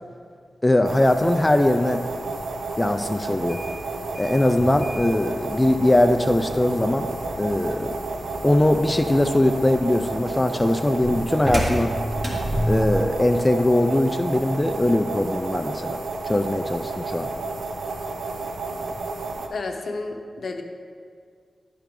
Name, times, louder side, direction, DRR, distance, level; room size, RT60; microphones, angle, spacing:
voice 1, 0.6-2.0 2.8-3.6 4.2-7.1 7.4-8.0 8.4-11.9 12.7-16.0 16.2-17.3, left 1 dB, 15° left, 6 dB, 0.3 m, -21 dB
sound 1, 0.8-19.5, right 3 dB, 85° right, 0.7 m, -31 dB
sound 2, 3.3-13.2, equal, 35° right, 1.9 m, -31 dB
voice 2, 19.5-20.6, left 3 dB, 65° left, 4 dB, 0.7 m, -31 dB
10.5 x 4.5 x 5.2 m, 2.1 s
wide cardioid pair, 95°, 0 cm